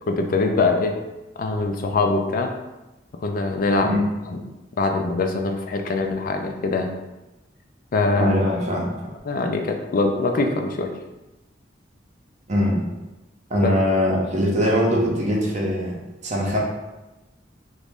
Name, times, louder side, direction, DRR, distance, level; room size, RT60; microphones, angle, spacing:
voice 1, 0.1-1.0 1.4-2.5 3.2-4.0 4.3-4.4 4.8-6.9 7.9-8.3 9.2-10.9 13.6-13.7, left 3 dB, 50° left, 4 dB, 0.4 m, -23 dB
voice 2, 8.1-9.1 12.5-12.9 13.5-16.0 16.2-16.6, equal, 40° right, -2 dB, 0.7 m, -22 dB
3.0 x 2.6 x 3.4 m, 1.0 s
head